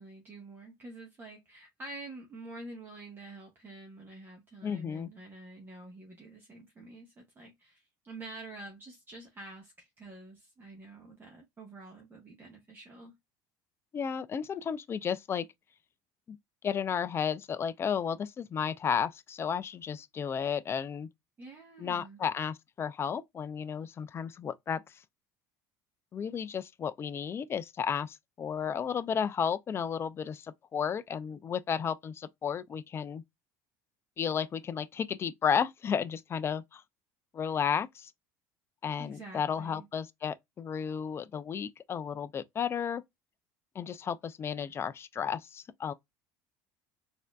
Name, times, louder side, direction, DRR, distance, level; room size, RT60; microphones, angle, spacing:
voice 1, 0.0-13.2 21.4-22.2 39.0-39.9, right 2 dB, 20° right, 1.0 m, -48 dB
voice 2, 4.6-5.1 13.9-15.5 16.3-16.4 16.6-21.1 21.8-24.8 26.1-33.2 34.2-36.8 37.3-38.1 38.8-43.0 43.8-45.9, left 7 dB, 30° left, 0.4 m, -33 dB
4.2 x 2.6 x 2.3 m
supercardioid pair, 110°, 9 cm